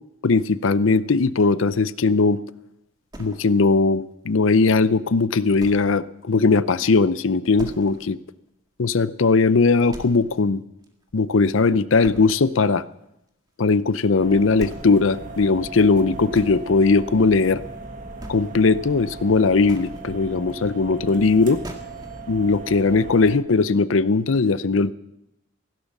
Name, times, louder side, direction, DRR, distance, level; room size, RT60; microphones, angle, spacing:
voice 1, 0.2-2.4 3.2-8.2 8.8-10.6 11.1-12.8 13.6-17.6 18.3-21.6 22.3-24.9, left 4 dB, 80° left, 16 dB, 0.6 m, -19 dB
sound 1, 3.1-3.9 4.3-4.4 4.9-5.0 5.6-6.0 6.3-6.4 6.8-6.9 7.6-8.1 8.5-8.6 9.1-9.2 9.9-10.5 10.8-11.6 12.0-12.5 13.9-14.0 14.5-15.0 15.9-16.6 17.6-17.8 18.1-18.7 19.4-20.0 21.2-21.3 21.6-22.2, right 1 dB, 20° right, 1.9 m, -40 dB
sound 2, 14.2-23.4, right 3 dB, 40° right, 1.7 m, -38 dB
15.5 x 12.0 x 7.2 m, 0.86 s
head